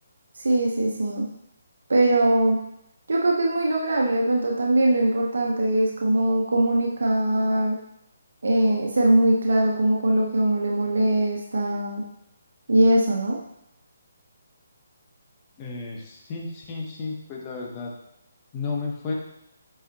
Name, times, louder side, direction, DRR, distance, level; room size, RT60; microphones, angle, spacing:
voice 1, 0.4-1.2 1.9-2.6 3.1-7.8 8.4-12.0 12.7-13.4, right 1 dB, 85° right, 0 dB, 1.0 m, -21 dB
voice 2, 15.6-17.9 18.5-19.1, left 4 dB, 20° left, -2 dB, 1.1 m, -32 dB
7.9 x 4.9 x 2.9 m, 0.80 s
hypercardioid pair, 165°, 0 cm